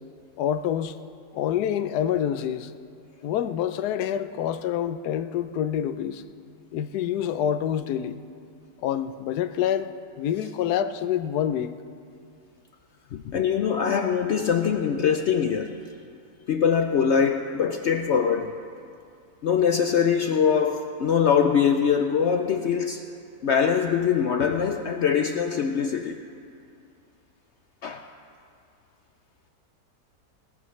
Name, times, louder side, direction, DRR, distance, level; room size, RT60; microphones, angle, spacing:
voice 1, 0.4-1.0 1.3-2.7 3.2-6.2 6.7-8.2 8.8-11.8, left 9 dB, 90° left, 12 dB, 1.1 m, -27 dB
voice 2, 13.1-15.8 16.5-18.6 19.4-23.0 23.4-26.2 27.8-28.0, left 7 dB, 65° left, 5 dB, 0.7 m, -23 dB
20.0 x 15.0 x 3.2 m, 2.4 s
omnidirectional pair, 1.6 m